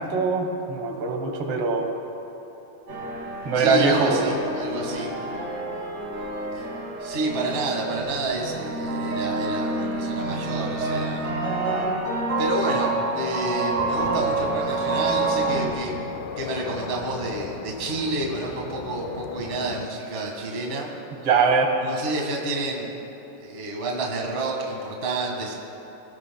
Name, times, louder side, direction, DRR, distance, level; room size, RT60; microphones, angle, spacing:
voice 1, 0.0-1.9 3.5-4.2 21.2-21.7, right 4 dB, 55° right, 3 dB, 2.2 m, -22 dB
sound 1, 2.9-15.7, right 2 dB, 75° right, 4.9 m, -28 dB
voice 2, 3.5-5.1 6.5-6.6 7.0-11.3 12.4-15.9 16.4-20.9 21.8-22.9 23.4-25.5, right 2 dB, 25° right, 0 dB, 1.3 m, -29 dB
sound 2, 13.8-19.9, left 8 dB, 85° left, 2.1 m, -37 dB
22.5 x 17.5 x 2.3 m, 3.0 s
omnidirectional pair, 3.4 m